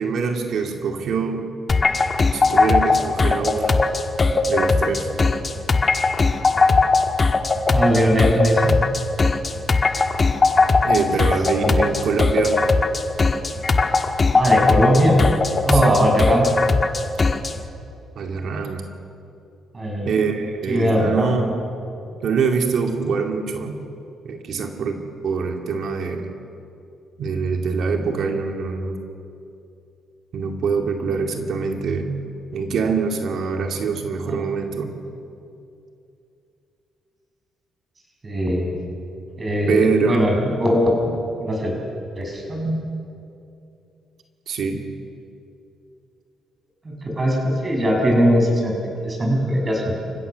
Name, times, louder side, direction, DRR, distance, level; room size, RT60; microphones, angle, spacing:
voice 1, 0.0-1.5 2.3-3.8 4.5-5.1 10.8-12.6 15.7-16.0 18.2-18.9 20.1-21.5 22.2-23.8 24.2-25.0 25.2-26.3 27.2-29.0 30.3-32.2 32.5-35.0 39.7-40.3 44.5-44.9, right 5 dB, 65° right, 4 dB, 2.2 m, -24 dB
sound 1, 1.7-17.6, left 3 dB, 35° left, 1.4 m, -19 dB
voice 2, 7.7-8.7 11.5-12.0 14.3-15.2 15.6-16.5 19.7-20.1 20.7-21.3 34.3-34.4 38.2-38.7 39.4-41.1 41.4-41.7 42.2-42.8 46.8-50.1, equal, 30° right, 0 dB, 6.7 m, -20 dB
29.0 x 16.0 x 6.8 m, 2.7 s
cardioid pair, 90°, 0 cm